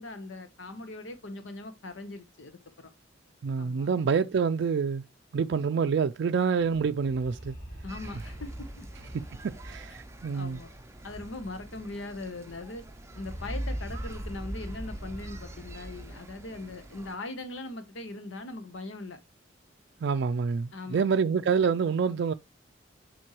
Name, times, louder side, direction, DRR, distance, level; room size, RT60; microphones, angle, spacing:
voice 1, 0.0-2.9 3.6-3.9 7.8-8.9 10.3-10.7 11.0-12.8 13.1-19.2 20.7-21.1, left 2 dB, 85° left, 1.0 m, -40 dB
voice 2, 3.4-5.0 5.3-7.6 9.1-10.6 20.0-22.3, right 6 dB, 65° right, 0.4 m, -27 dB
sound 1, 6.7-11.8 12.0-12.1 12.4-16.7, equal, 50° left, 2.7 m, -41 dB
sound 2, 7.9-17.2, right 2 dB, 15° right, 0.6 m, -49 dB
7.5 x 4.4 x 3.0 m
head